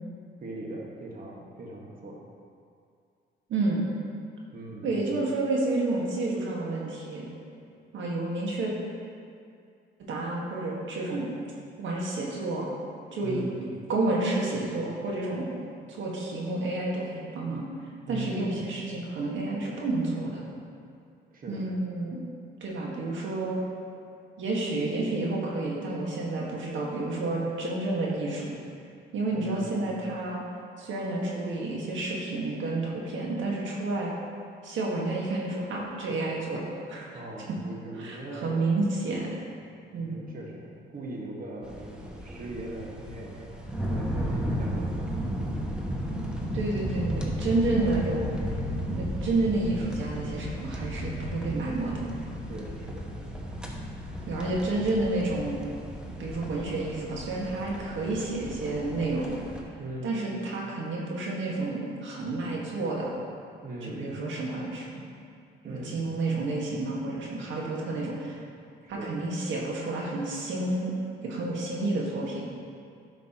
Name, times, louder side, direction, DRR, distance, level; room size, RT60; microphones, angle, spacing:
voice 1, 0.4-2.2 4.5-5.1 13.2-13.6 18.1-18.5 21.3-21.6 29.3-29.7 37.1-38.6 39.9-45.1 52.5-53.0 59.8-60.1 63.6-64.1 65.6-66.0 68.8-69.2, right 1 dB, 45° right, -2 dB, 1.7 m, -40 dB
voice 2, 3.5-3.9 4.8-7.3 7.9-8.7 10.1-11.3 11.8-12.7 13.1-13.4 13.9-15.5 15.9-17.6 18.1-20.4 21.5-22.3 22.6-23.6 24.4-28.6 29.1-30.4 30.8-34.1 34.6-36.6 36.9-37.2 38.0-39.3 39.9-40.2 46.5-48.3 48.9-52.0 54.3-55.6 56.2-59.5 60.0-63.1 63.9-65.0 65.7-68.4 68.9-70.9 71.2-72.5, right 2 dB, 70° right, -3 dB, 1.7 m, -30 dB
sound 1, 41.6-59.6, equal, 5° right, 1.1 m, -34 dB
11.0 x 6.0 x 3.0 m, 2.4 s
cardioid pair, 90°, 20 cm